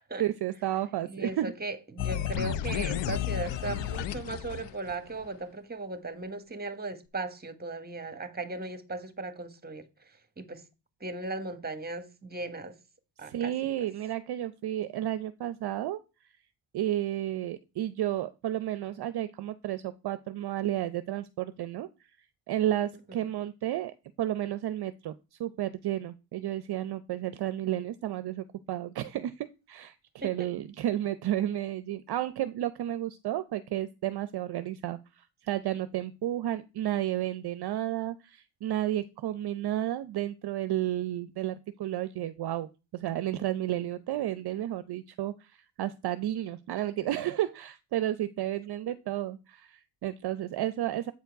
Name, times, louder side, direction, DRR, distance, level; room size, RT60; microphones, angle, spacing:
voice 1, 0.2-1.5 13.2-16.0 16.7-21.9 22.5-25.1 25.4-30.0 30.2-51.1, right 13 dB, 50° right, 0.6 m, -32 dB
voice 2, 1.0-9.8 10.4-10.6 11.0-12.8 13.2-13.5 23.1-23.2 30.2-30.3, right 3 dB, 20° right, 1.4 m, -37 dB
sound 1, 2.0-5.3, left 10 dB, 60° left, 0.7 m, -32 dB
8.3 x 4.5 x 4.6 m
supercardioid pair, 65°, 50 cm